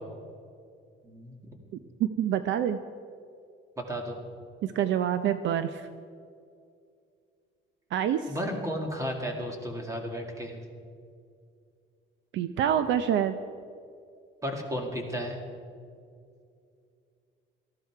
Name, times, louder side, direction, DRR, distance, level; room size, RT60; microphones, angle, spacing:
voice 1, 1.0-1.4 3.9-4.2 8.3-10.6 14.4-15.4, equal, 15° right, 2 dB, 2.0 m, -33 dB
voice 2, 2.0-2.8 4.6-5.9 7.9-8.4 12.3-13.4, right 9 dB, 60° right, 11 dB, 0.6 m, -26 dB
18.5 x 13.5 x 4.7 m, 2.3 s
cardioid pair, 170°, 21 cm